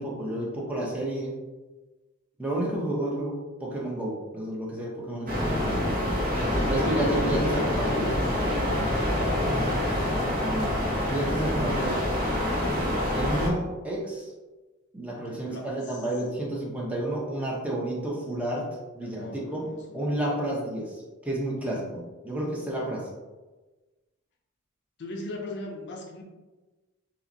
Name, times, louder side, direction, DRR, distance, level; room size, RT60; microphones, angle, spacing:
voice 1, 0.0-1.4 2.4-6.0 6.7-8.2 10.0-11.9 13.1-14.3 14.9-18.7 18.9-19.7 19.9-23.1, right 1 dB, 5° right, -4 dB, 0.7 m, -31 dB
sound 1, 5.3-13.5, left 1 dB, 40° right, 0.8 m, -26 dB
voice 2, 6.4-10.7 11.6-12.3 15.3-16.1 19.0-20.0 25.0-26.2, left 2 dB, 55° left, 1 dB, 0.6 m, -40 dB
5.5 x 2.1 x 2.6 m, 1.2 s
head